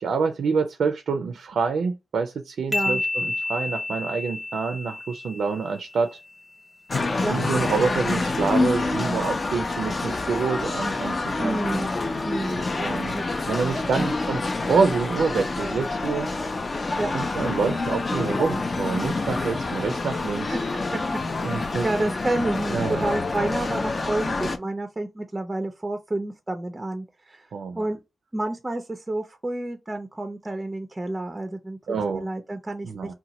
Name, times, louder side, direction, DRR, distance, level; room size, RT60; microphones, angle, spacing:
voice 1, 0.0-6.2 7.2-11.6 12.8-13.2 13.5-16.3 17.1-20.6 21.4-21.9 22.7-23.2 27.5-27.8 31.9-32.3 32.8-33.1, right 5 dB, 80° right, 0.4 m, -27 dB
sound 1, 2.7-6.3, left 2 dB, ahead, 0.9 m, -30 dB
voice 2, 2.7-3.0 7.2-7.4 11.4-12.0 12.2-12.6 13.1-13.2 14.0-14.1 17.0-17.1 20.5-20.6 21.5-27.5 27.8-28.0 28.3-33.1, right 2 dB, 20° right, 0.4 m, -29 dB
sound 2, 6.9-24.6, left 3 dB, 35° left, 0.4 m, -27 dB
2.8 x 2.2 x 3.9 m
wide cardioid pair, 130°, 0 cm